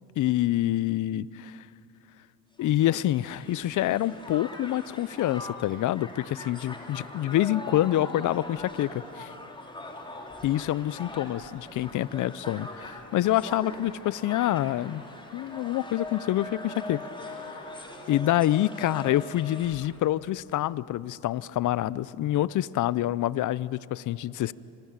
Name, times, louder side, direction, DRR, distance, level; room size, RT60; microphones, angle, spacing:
voice 1, 0.2-1.7 2.6-9.3 10.4-15.0 15.3-17.6 18.1-24.5, left 14 dB, 45° left, 20 dB, 0.6 m, -27 dB
Crowd, 2.6-20.0, left 2 dB, 10° left, 3.4 m, -42 dB
26.5 x 21.0 x 8.9 m, 3.0 s
supercardioid pair, 105°, 44 cm